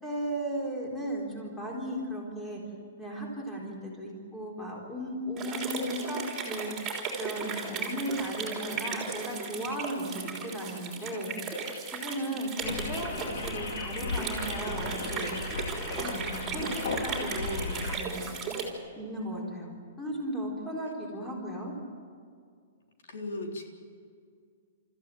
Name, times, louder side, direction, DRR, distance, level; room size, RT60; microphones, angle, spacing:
voice 1, 0.0-2.6 3.0-11.3 12.0-18.2 18.9-19.7 20.0-21.7, right 1 dB, 10° left, -2 dB, 4.0 m, -36 dB
sound 1, 5.4-18.7, right 5 dB, 10° right, 3.5 m, -36 dB
voice 2, 12.5-12.8 23.1-23.6, left 2 dB, 85° left, 2 dB, 3.7 m, -37 dB
sound 2, 12.6-18.0, left 3 dB, 55° left, 2.5 m, -35 dB
29.0 x 14.5 x 9.1 m, 2.2 s
hypercardioid pair, 175°, 0 cm